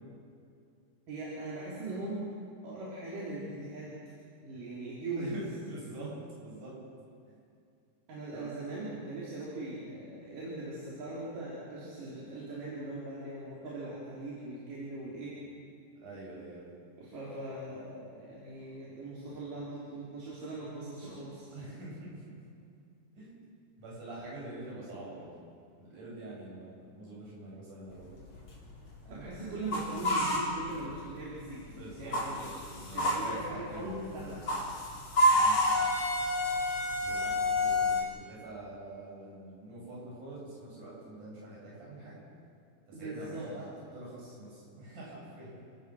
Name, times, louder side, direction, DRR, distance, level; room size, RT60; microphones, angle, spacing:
voice 1, 1.1-2.2 2.6-3.9 4.4-5.4 8.1-15.3 17.0-21.5 29.1-31.6 32.0-32.4 32.8-34.4 42.9-43.5, right 2 dB, 85° right, -7 dB, 5.5 m, -40 dB
voice 2, 5.2-6.8 8.3-8.5 16.0-16.7 19.3-19.6 21.5-22.4 23.2-23.4 23.8-25.3 25.8-28.2 31.7-34.0 34.3-34.5 35.3-35.6 37.0-42.2 42.9-45.6, right 2 dB, 70° right, -5 dB, 9.7 m, -45 dB
sound 1, 28.0-31.2 31.5-38.0, left 1 dB, 40° left, 4.6 m, -29 dB
29.5 x 18.0 x 6.4 m, 2.4 s
omnidirectional pair, 3.7 m